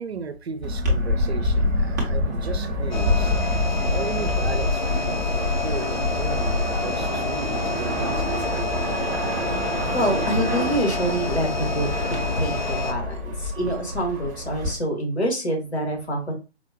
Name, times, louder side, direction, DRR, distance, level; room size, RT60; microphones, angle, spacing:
voice 1, 0.0-3.3 3.9-8.4, right 5 dB, 70° right, 11 dB, 0.6 m, -35 dB
sound 1, 0.6-14.7, left 1 dB, 15° right, 0.5 m, -26 dB
sound 2, 2.9-12.9, left 4 dB, 45° left, 0.5 m, -29 dB
voice 2, 9.9-16.3, right 1 dB, 80° left, 1 dB, 1.7 m, -26 dB
4.3 x 2.1 x 2.8 m, 0.30 s
figure-of-eight pair, 135°, 33 cm